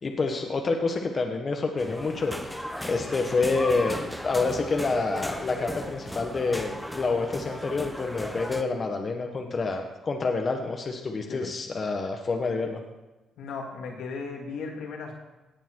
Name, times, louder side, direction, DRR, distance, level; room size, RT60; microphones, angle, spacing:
voice 1, 0.0-2.5 2.8-4.0 4.2-12.8, left 3 dB, 40° left, 3 dB, 1.4 m, -28 dB
sound 1, 1.8-8.6, equal, ahead, 1.0 m, -36 dB
voice 2, 13.4-15.1, left 4 dB, 80° left, 0 dB, 2.5 m, -36 dB
18.0 x 7.1 x 4.8 m, 1.1 s
cardioid pair, 90°, 0 cm